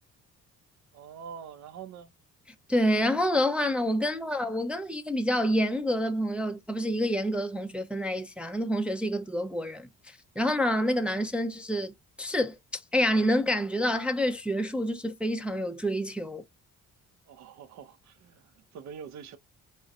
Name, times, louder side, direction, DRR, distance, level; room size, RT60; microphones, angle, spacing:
voice 1, 0.9-2.1 17.3-19.4, right 7 dB, 65° right, 0.5 m, -45 dB
voice 2, 2.7-16.4, equal, 5° right, 0.3 m, -28 dB
2.4 x 2.1 x 2.5 m
cardioid pair, 90°, 30 cm